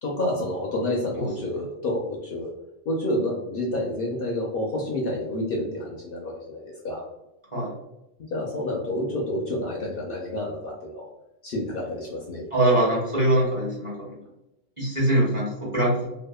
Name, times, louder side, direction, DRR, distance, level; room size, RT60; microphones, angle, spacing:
voice 1, 0.0-2.5 2.8-7.0 8.3-11.1 11.4-12.4, left 1 dB, 60° left, -2 dB, 0.7 m, -29 dB
voice 2, 12.5-14.1 14.8-16.0, right 1 dB, 30° right, -6 dB, 0.8 m, -23 dB
2.7 x 2.2 x 2.2 m, 0.90 s
omnidirectional pair, 1.2 m